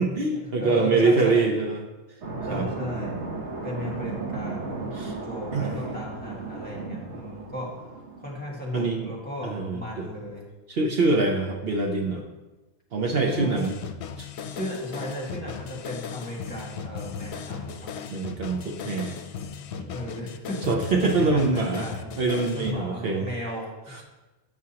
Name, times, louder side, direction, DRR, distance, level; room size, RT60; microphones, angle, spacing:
voice 1, 0.0-1.8 2.5-2.7 4.9-5.1 5.5-5.8 8.7-9.1 9.4-10.1 10.7-12.2 12.9-13.8 14.2-14.3 18.1-19.2 19.8-19.9 20.7-21.8 22.2-23.3 23.9-24.0, right 3 dB, 60° right, 1 dB, 0.9 m, -24 dB
voice 2, 0.6-1.4 2.5-3.2 3.6-4.8 5.0-7.7 8.2-10.4 13.3-13.7 14.5-17.9 19.9-22.1 22.5-24.0, equal, 10° left, -4 dB, 1.6 m, -35 dB
sound 1, 2.2-8.6, right 3 dB, 85° right, 1.2 m, -35 dB
sound 2, 13.6-22.7, left 7 dB, 75° left, 0.8 m, -37 dB
9.3 x 6.0 x 2.8 m, 1.1 s
omnidirectional pair, 1.2 m